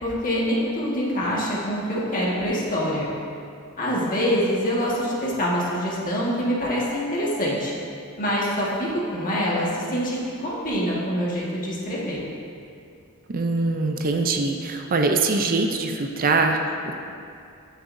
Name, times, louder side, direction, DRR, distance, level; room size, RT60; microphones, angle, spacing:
voice 1, 0.0-3.1 3.8-7.7 8.2-12.2, equal, 40° left, -5 dB, 1.6 m, -25 dB
voice 2, 13.3-16.9, right 3 dB, 40° right, 4 dB, 0.5 m, -23 dB
14.0 x 6.6 x 2.6 m, 2.5 s
head